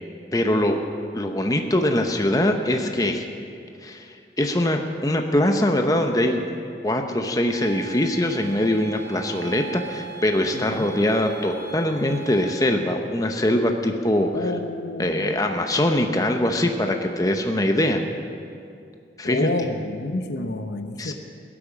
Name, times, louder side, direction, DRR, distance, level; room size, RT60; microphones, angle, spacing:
voice 1, 0.3-0.8 1.1-3.2 3.8-4.1 4.4-6.4 6.8-14.5 15.0-18.0 19.2-19.5 21.0-21.1, left 1 dB, 20° left, 5 dB, 0.8 m, -22 dB
sound 1, 7.5-12.5, right 6 dB, 80° right, 2.4 m, -40 dB
voice 2, 10.5-10.9 14.3-15.3 19.2-21.1, left 2 dB, 75° left, 7 dB, 0.9 m, -28 dB
16.0 x 8.7 x 7.3 m, 2.5 s
head